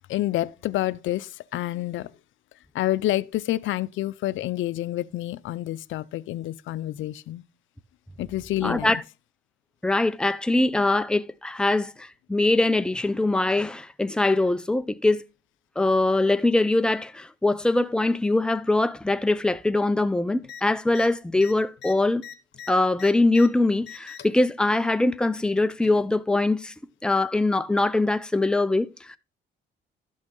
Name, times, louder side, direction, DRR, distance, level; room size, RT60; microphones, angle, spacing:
voice 1, 0.1-2.1 2.7-7.4 8.2-8.9, left 15 dB, 75° left, 0.5 m, -28 dB
voice 2, 8.6-9.0 9.8-15.2 15.8-22.2 22.7-26.7 27.0-29.2, left 2 dB, 5° left, 0.6 m, -22 dB
sound 1, 20.4-20.6 20.9-21.1 21.3-23.5 23.8-24.4 25.4-26.0 27.1-27.2, left 8 dB, 60° left, 1.4 m, -42 dB
12.5 x 6.3 x 3.8 m
cardioid pair, 90°, 20 cm